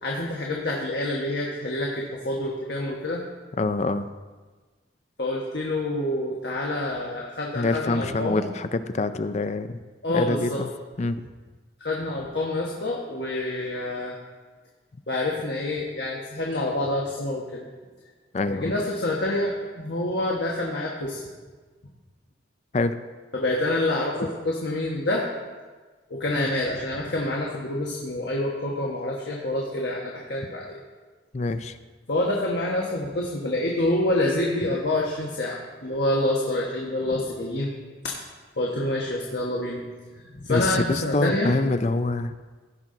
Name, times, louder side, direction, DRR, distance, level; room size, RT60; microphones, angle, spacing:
voice 1, 0.0-3.2 5.2-8.5 10.0-10.6 11.8-14.2 15.1-17.7 18.5-21.2 23.3-25.2 26.1-30.8 32.1-37.7 38.0-38.1 38.6-39.8 40.1-41.5, left 1 dB, 65° left, -2 dB, 1.3 m, -27 dB
voice 2, 3.6-4.1 7.5-9.8 10.1-10.7 11.0-11.2 18.3-18.7 22.7-23.0 26.4-26.5 31.3-31.8 40.5-42.3, left 3 dB, 35° left, 12 dB, 0.4 m, -25 dB
16.5 x 6.0 x 3.8 m, 1.3 s
head